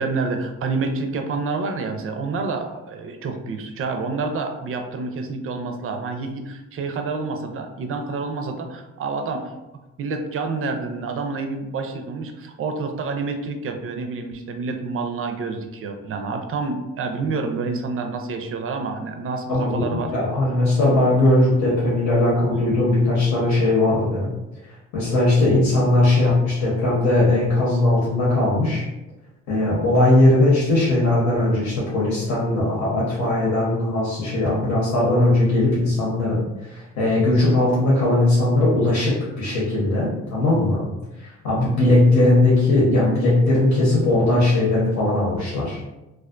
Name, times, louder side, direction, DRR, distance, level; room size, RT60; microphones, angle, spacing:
voice 1, 0.0-9.5 10.0-20.1, right 4 dB, 45° right, 5 dB, 0.4 m, -28 dB
voice 2, 19.5-24.3 24.9-28.9 29.5-40.8 41.2-45.8, left 2 dB, 80° left, -7 dB, 0.9 m, -19 dB
2.4 x 2.2 x 2.4 m, 0.99 s
cardioid pair, 90°, 30 cm